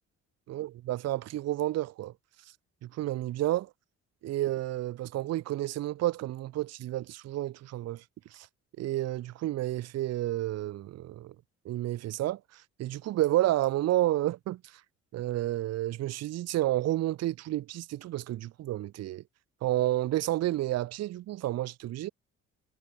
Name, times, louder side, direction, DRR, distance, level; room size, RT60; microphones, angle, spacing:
voice 1, 0.5-2.1 2.8-3.7 4.2-8.0 8.3-8.5 8.8-11.3 11.6-14.7 15.1-19.2 19.6-22.1, right 15 dB, 60° right, 0.5 m, -30 dB
cardioid pair, 90°, 30 cm